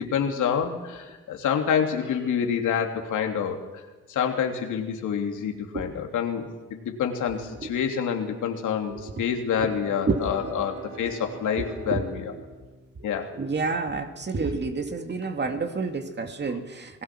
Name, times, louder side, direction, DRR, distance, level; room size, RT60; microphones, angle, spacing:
voice 1, 0.0-3.6 4.1-12.3 13.0-13.3, left 7 dB, 75° left, 3 dB, 3.0 m, -27 dB
voice 2, 8.9-9.2 9.6-9.7 10.1-10.7 11.6-12.1 13.0-17.0, right 4 dB, 35° right, 5 dB, 2.4 m, -30 dB
Bowed string instrument, 9.5-14.0, right 5 dB, 70° right, 6.2 m, -46 dB
28.0 x 18.5 x 6.2 m, 1.2 s
cardioid pair, 90°, 30 cm